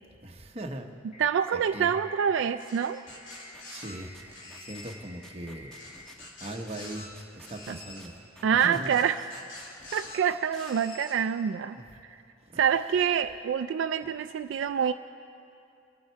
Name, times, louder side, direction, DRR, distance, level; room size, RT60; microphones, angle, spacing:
voice 1, 0.1-0.9 1.5-1.9 3.7-4.1 4.6-5.8 6.4-8.1 8.6-8.9 11.8-11.9 12.5-12.6, right 1 dB, 35° right, 3 dB, 1.0 m, -39 dB
sound 1, 1.1-6.1, left 2 dB, 40° left, 1.7 m, -50 dB
voice 2, 1.2-3.0 7.7-7.8 8.4-9.2 9.9-11.8 12.6-14.9, right 7 dB, 70° right, 10 dB, 0.3 m, -26 dB
sound 2, 2.6-3.9 4.3-4.9 5.7-7.1 7.4-8.0 8.8-10.2 10.5-11.1, left 2 dB, 75° left, 2.8 m, -46 dB
sound 3, 3.1-10.7, right 1 dB, 5° left, 1.7 m, -52 dB
24.0 x 11.5 x 4.5 m, 2.7 s
head